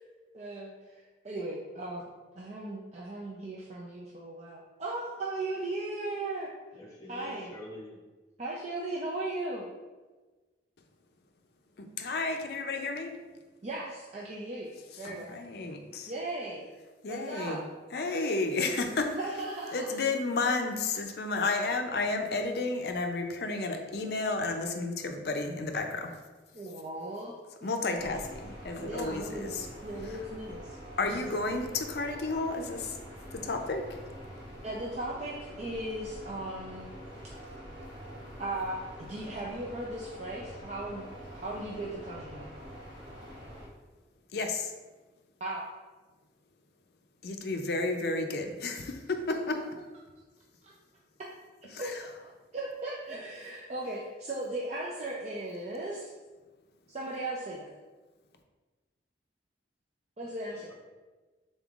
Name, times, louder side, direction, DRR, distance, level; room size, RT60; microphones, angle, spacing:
voice 1, 0.3-2.1 2.3-6.5 7.1-7.5 8.4-9.7 13.6-15.3 16.1-16.7 17.1-17.6 19.1-19.9 26.5-27.3 27.6-28.2 28.8-31.2 34.6-36.9 38.4-41.1 41.3-42.5 45.4-45.6 50.6-50.7 51.7-52.1 52.5-56.1 56.9-57.7 60.2-60.7, right 2 dB, 40° right, -4 dB, 0.5 m, -37 dB
voice 2, 6.7-8.0 60.5-60.7, left 1 dB, 20° left, -4 dB, 0.8 m, -46 dB
voice 3, 11.8-13.2 14.9-16.1 17.0-17.6 17.9-19.3 19.7-26.1 27.6-29.7 31.0-33.0 33.3-34.0 44.3-44.7 47.2-49.6 51.7-52.0, left 3 dB, 60° left, 5 dB, 0.5 m, -32 dB
sound 1, 27.9-43.7, equal, 70° right, 1.5 m, -46 dB
5.3 x 3.8 x 2.4 m, 1.3 s
head